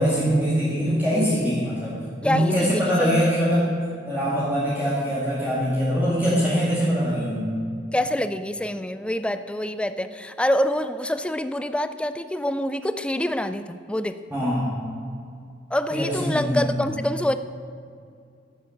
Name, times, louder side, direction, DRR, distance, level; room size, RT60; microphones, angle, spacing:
voice 1, 0.0-3.7 4.1-7.5 14.3-14.7 15.9-16.8, equal, 10° right, -8 dB, 1.9 m, -23 dB
voice 2, 2.2-3.3 7.9-14.2 15.7-17.4, left 1 dB, 5° left, 11 dB, 0.4 m, -26 dB
10.5 x 8.7 x 6.5 m, 2.4 s
head